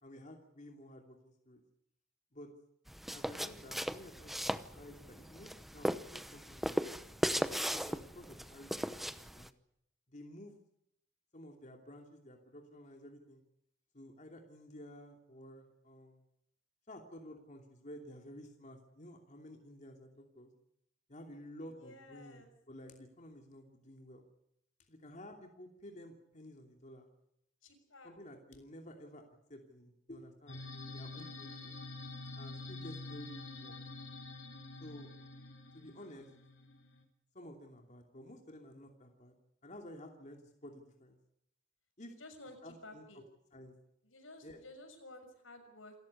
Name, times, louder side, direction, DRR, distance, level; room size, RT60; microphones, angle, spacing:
voice 1, 0.0-1.6 2.3-2.5 3.1-6.7 7.3-8.9 9.2-9.5 10.1-10.6 11.3-13.4 13.9-16.2 16.9-20.5 21.1-24.2 24.9-27.1 28.0-29.2 29.5-31.8 32.4-33.7 34.8-35.1 35.7-36.3 37.3-39.3 39.6-41.2 42.0-42.1 42.6-43.2 43.5-43.7 44.4-44.6, left 1 dB, 40° left, 3 dB, 2.9 m, -52 dB
sound 1, 2.9-9.5, equal, ahead, 0.8 m, -37 dB
voice 2, 21.6-22.5 27.6-28.1 42.2-43.2 44.0-45.9, left 2 dB, 90° left, 7 dB, 6.5 m, -53 dB
sound 2, 30.5-37.0, left 2 dB, 70° left, 3.6 m, -47 dB
28.0 x 14.5 x 9.7 m, 0.79 s
head